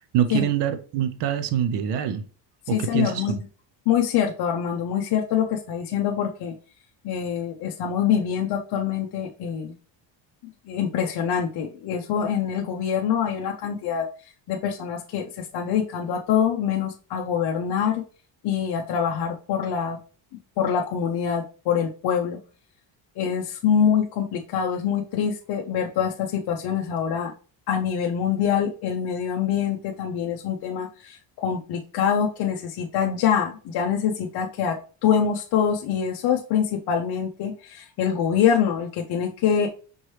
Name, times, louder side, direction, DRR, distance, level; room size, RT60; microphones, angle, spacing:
voice 1, 0.1-2.2 2.7-3.2, right 9 dB, 65° right, 9 dB, 0.6 m, -24 dB
voice 2, 2.7-3.4 3.9-6.5 7.0-9.7 10.7-14.1 14.5-18.0 18.4-20.0 20.6-22.4 23.2-27.3 27.7-34.8 35.0-39.7, left 8 dB, 60° left, 1 dB, 0.6 m, -25 dB
5.3 x 3.0 x 3.1 m, 0.37 s
cardioid pair, 165°, 45 cm